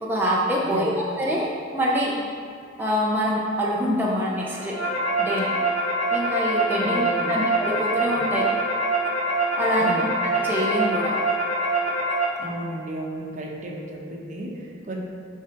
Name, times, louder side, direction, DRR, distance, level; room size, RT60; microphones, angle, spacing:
voice 1, 0.0-2.2 2.8-4.8 5.2-5.5 6.1-8.6 9.6-10.1 10.3-11.2, equal, 10° right, -5 dB, 0.7 m, -25 dB
voice 2, 0.6-1.0 6.8-7.4 9.8-10.1 12.4-15.0, right 1 dB, 45° right, -1 dB, 1.0 m, -33 dB
sound 1, 4.4-12.2, right 2 dB, 45° left, 1.0 m, -24 dB
10.0 x 3.8 x 4.5 m, 2.4 s
head